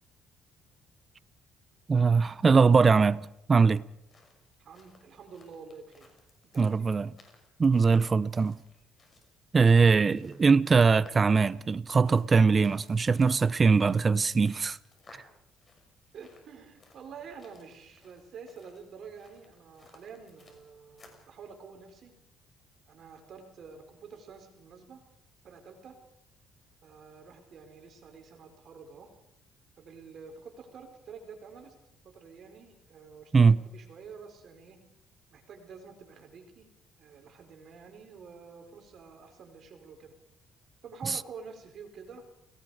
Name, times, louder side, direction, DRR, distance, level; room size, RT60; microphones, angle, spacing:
voice 1, 1.9-3.8 6.6-7.1 7.6-8.6 9.5-14.8 33.3-33.6 41.0-41.2, right 5 dB, 35° right, 0.8 m, -22 dB
sound 1, 4.0-21.3, left 3 dB, 35° left, 6.1 m, -60 dB
voice 2, 4.6-6.1 6.5-6.9 16.1-22.1 22.9-25.0 25.4-26.0 26.8-29.1 29.8-31.7 32.0-34.8 35.3-36.7 37.0-40.2 40.8-42.2, right 5 dB, 60° right, 4.7 m, -48 dB
30.0 x 18.5 x 5.0 m
supercardioid pair, 75°, 0 cm